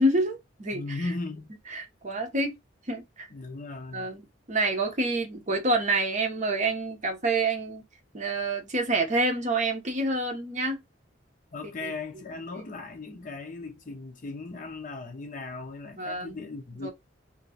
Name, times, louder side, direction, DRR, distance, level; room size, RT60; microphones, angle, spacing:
voice 1, 0.0-1.0 1.7-2.5 2.9-3.3 3.9-7.8 8.1-10.8 11.8-11.9 16.0-16.4 16.8-16.9, right 2 dB, 40° right, 0.8 m, -27 dB
voice 2, 0.7-1.5 3.3-4.1 11.5-16.9, left 3 dB, 45° left, 0.7 m, -37 dB
3.0 x 2.6 x 2.7 m
head